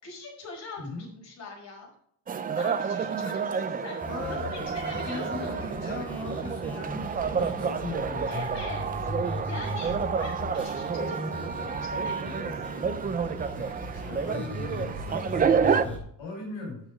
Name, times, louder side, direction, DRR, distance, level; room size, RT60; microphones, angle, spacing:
voice 1, 0.0-1.9 2.3-5.5 7.2-7.3 7.8-7.9 8.3-13.0, left 2 dB, 35° left, -3 dB, 5.3 m, -42 dB
voice 2, 0.8-1.1 4.1-4.5 4.9-8.3 13.8-16.8, left 2 dB, 65° left, -1 dB, 4.1 m, -38 dB
sound 1, 2.3-15.8, right 6 dB, 20° right, 0.4 m, -29 dB
sound 2, 4.0-16.0, left 1 dB, 5° left, 5.3 m, -38 dB
8.9 x 8.6 x 4.9 m, 0.66 s
cardioid pair, 175°, 47 cm